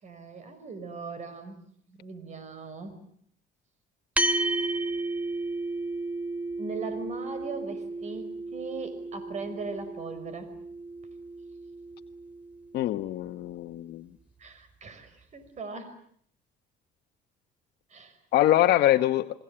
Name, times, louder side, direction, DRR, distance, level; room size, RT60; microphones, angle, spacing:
voice 1, 0.0-1.6 1.9-3.0 6.6-10.5 14.4-15.9 17.9-18.2, right 4 dB, 45° right, 11 dB, 5.4 m, -39 dB
sound 1, 4.2-12.8, right 2 dB, 10° right, 2.0 m, -33 dB
voice 2, 12.7-14.0 18.3-19.4, left 14 dB, 75° left, 7 dB, 1.1 m, -24 dB
29.0 x 23.0 x 8.8 m, 0.64 s
cardioid pair, 110°, 17 cm